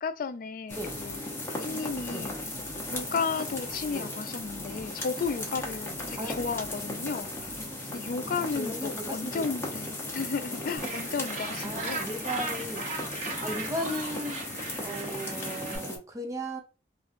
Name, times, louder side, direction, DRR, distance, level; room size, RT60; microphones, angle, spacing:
voice 1, 0.0-1.2 1.6-2.5 2.9-7.6 7.9-12.1, left 5 dB, 50° left, 0.3 m, -34 dB
sound 1, 0.7-16.0, left 1 dB, 15° left, 0.8 m, -36 dB
sound 2, 0.7-8.0, right 1 dB, 65° right, 0.6 m, -52 dB
voice 2, 8.5-9.5 10.2-10.3 11.6-12.8 13.4-14.4 14.8-16.6, equal, 20° right, 0.7 m, -36 dB
Gull seagull, 10.8-15.8, right 3 dB, 45° right, 1.0 m, -38 dB
3.1 x 2.5 x 2.5 m
head